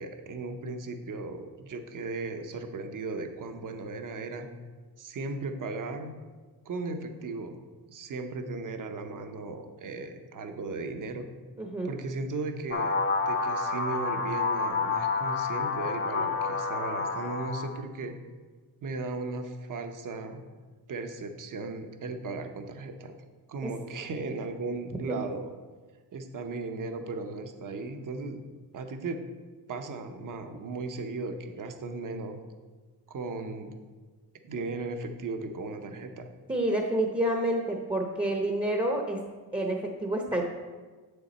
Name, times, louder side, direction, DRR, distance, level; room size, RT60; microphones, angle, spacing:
voice 1, 0.0-4.5 5.0-6.1 6.6-7.6 7.9-11.3 11.8-13.0 13.3-18.2 18.8-20.4 20.9-23.1 23.5-25.5 26.1-28.4 28.7-29.2 29.7-32.4 33.1-33.7 34.4-36.3, right 3 dB, 50° right, 7 dB, 0.8 m, -36 dB
voice 2, 11.6-11.9 23.6-23.7 25.1-25.2 36.5-39.2 39.5-40.4, right 1 dB, 15° right, 1 dB, 0.7 m, -28 dB
sound 1, 12.7-17.8, left 4 dB, 30° left, 0.7 m, -29 dB
7.7 x 6.8 x 4.2 m, 1.4 s
cardioid pair, 120°, 41 cm